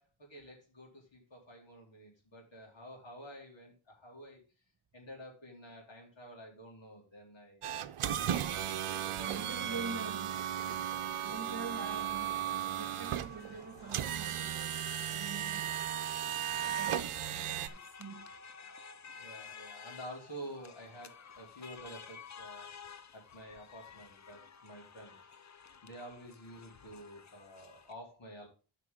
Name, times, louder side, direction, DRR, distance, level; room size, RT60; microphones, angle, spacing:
voice 1, 0.0-4.4 4.9-7.6 8.5-9.8 19.1-28.5, right 1 dB, 60° left, 3.9 m, -50 dB
sound 1, 7.6-17.7, right 10 dB, 80° right, 0.7 m, -36 dB
voice 2, 9.2-10.4 11.2-15.8 16.6-18.4, right 4 dB, 45° right, 1.5 m, -45 dB
sound 2, 12.7-27.9, left 6 dB, 35° left, 0.5 m, -53 dB
12.0 x 5.8 x 3.7 m
wide cardioid pair, 115°, 50 cm